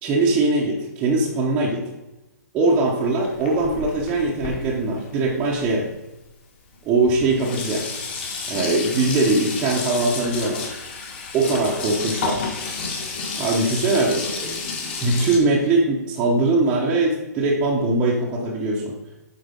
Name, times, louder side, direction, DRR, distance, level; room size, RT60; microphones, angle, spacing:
voice 1, 0.0-1.9 2.5-5.9 6.8-7.9 8.5-10.6 11.3-12.5 13.4-14.6 15.0-19.0, right 2 dB, 15° right, -4 dB, 0.8 m, -21 dB
Sink (filling or washing), 2.8-6.0 6.7-6.8 7.1-15.4, left 4 dB, 35° left, 1.5 m, -31 dB
7.9 x 5.0 x 5.2 m, 0.97 s
hypercardioid pair, 170°, 10 cm